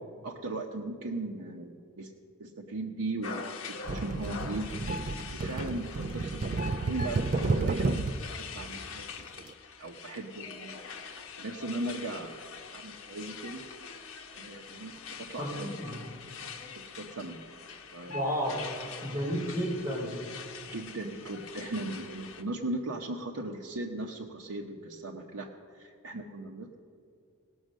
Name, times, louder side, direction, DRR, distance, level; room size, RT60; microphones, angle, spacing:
voice 1, 0.2-2.1 2.4-4.7 5.3-9.3 9.8-10.8 11.4-12.4 12.7-13.6 14.3-15.7 16.4-17.4 17.9-18.2 18.5-18.6 20.7-26.8, right 2 dB, 80° right, 0 dB, 0.9 m, -38 dB
sound 1, 3.2-22.4, left 5 dB, 65° left, 1.1 m, -43 dB
sound 2, 3.9-8.3 9.4-9.5, right 3 dB, 35° right, 0.3 m, -31 dB
voice 2, 15.4-16.0 18.1-18.6 19.0-20.1, equal, 15° right, -4 dB, 3.5 m, -32 dB
18.5 x 6.4 x 6.4 m, 2.4 s
head